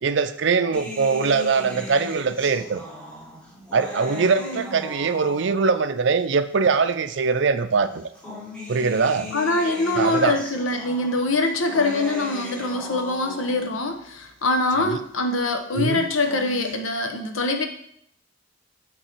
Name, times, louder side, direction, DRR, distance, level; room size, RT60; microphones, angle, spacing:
voice 1, 0.0-2.8 3.7-8.1 8.7-9.3 10.0-10.4 14.8-15.0 15.7-16.0, right 5 dB, 60° right, 12 dB, 0.4 m, -22 dB
sound 1, 0.7-5.8 6.7-6.8 7.9-13.8 16.0-16.7, left 1 dB, 5° left, 1.1 m, -38 dB
voice 2, 9.3-17.6, left 2 dB, 85° left, 5 dB, 0.9 m, -24 dB
9.1 x 4.0 x 4.5 m, 0.69 s
head